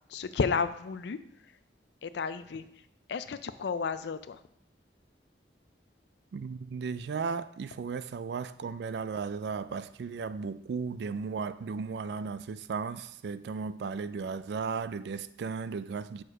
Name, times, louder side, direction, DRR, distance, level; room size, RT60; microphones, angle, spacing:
voice 1, 0.1-1.2 2.0-2.7 3.1-4.4, left 5 dB, 70° left, 0.4 m, -32 dB
voice 2, 6.3-16.2, right 5 dB, 70° right, 0.3 m, -35 dB
6.3 x 4.7 x 4.9 m
head